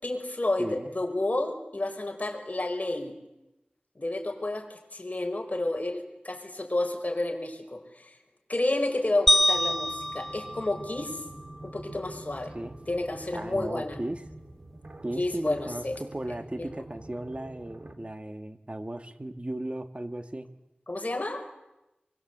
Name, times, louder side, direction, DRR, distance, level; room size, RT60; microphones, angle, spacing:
voice 1, 0.0-3.2 3.9-8.2 8.5-11.2 11.6-12.5 12.9-14.0 15.2-16.0 16.5-16.7 20.9-21.4, left 2 dB, 50° left, 3 dB, 5.1 m, -30 dB
voice 2, 0.6-0.9 12.5-12.7 13.3-14.2 15.0-20.5, right 1 dB, 40° right, 8 dB, 2.0 m, -36 dB
sound 1, 9.3-11.6, equal, 5° left, 0.8 m, -26 dB
sound 2, 9.5-17.9, right 1 dB, 60° right, 3.0 m, -46 dB
25.0 x 23.5 x 8.2 m, 0.94 s
wide cardioid pair, 40°, 3 cm